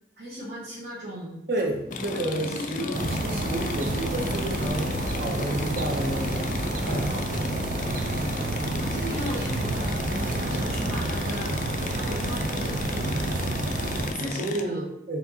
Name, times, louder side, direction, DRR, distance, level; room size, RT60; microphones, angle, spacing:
voice 1, 0.2-1.4 2.1-3.0 8.8-14.9, equal, 85° right, -9 dB, 1.1 m, -37 dB
voice 2, 1.5-6.5 6.8-7.3 14.2-15.2, right 1 dB, 65° right, 1 dB, 0.8 m, -31 dB
sound 1, 1.6-13.3, right 1 dB, 30° right, 0.8 m, -44 dB
sound 2, 1.9-14.6, left 3 dB, 45° left, 0.3 m, -34 dB
sound 3, 2.9-14.1, right 2 dB, 45° right, 0.4 m, -30 dB
4.2 x 3.4 x 2.8 m, 0.89 s
head